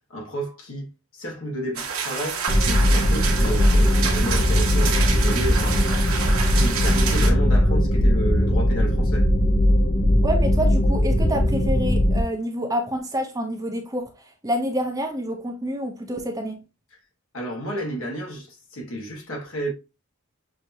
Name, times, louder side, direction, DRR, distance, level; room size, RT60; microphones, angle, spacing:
voice 1, 0.1-5.8 6.5-9.3 17.3-19.7, right 1 dB, 65° left, 1.6 m, -32 dB
sound 1, 1.7-7.3, right 6 dB, 75° right, 1.1 m, -28 dB
sound 2, 2.5-12.2, equal, 25° left, 0.6 m, -19 dB
voice 2, 10.2-14.0 14.4-16.6, equal, 15° right, 0.7 m, -27 dB
6.3 x 2.8 x 2.6 m
head